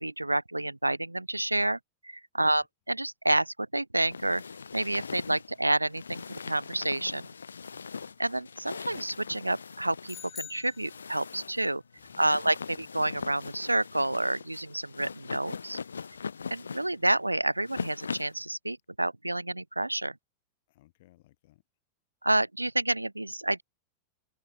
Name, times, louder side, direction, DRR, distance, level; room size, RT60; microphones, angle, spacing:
voice 1, 0.0-1.8 2.0-4.4 4.7-7.3 8.2-11.8 12.2-15.8 16.5-20.1 22.2-23.6, right 1 dB, 85° right, 0.3 m, -29 dB
sound 1, 4.1-18.4, left 5 dB, 75° left, 2.7 m, -41 dB
voice 2, 7.7-8.1 11.9-12.9 16.0-16.5 20.7-21.6, left 17 dB, 55° left, 6.5 m, -63 dB
sound 2, 10.1-11.5, left 10 dB, 25° left, 0.7 m, -45 dB
open air
figure-of-eight pair, 90°, 0 cm